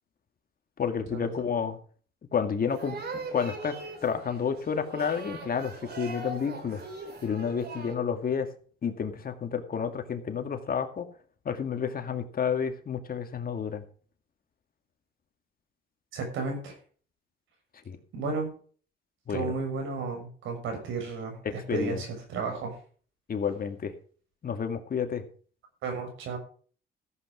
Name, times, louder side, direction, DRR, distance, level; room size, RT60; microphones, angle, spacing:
voice 1, 0.8-1.8 2.3-3.0 3.3-3.8 4.0-6.8 7.2-8.5 8.8-11.1 11.5-13.8 17.9-18.0 19.3-19.5 21.4-22.0 23.3-23.9 24.4-25.2, left 6 dB, 50° left, 7 dB, 2.1 m, -30 dB
sound 1, 2.7-7.9, right 3 dB, 55° right, 4.7 m, -40 dB
voice 2, 16.1-16.7 18.1-18.5 19.3-22.7 25.8-26.4, right 4 dB, 85° right, 3 dB, 6.5 m, -33 dB
14.5 x 8.3 x 5.1 m, 0.43 s
cardioid pair, 90°, 20 cm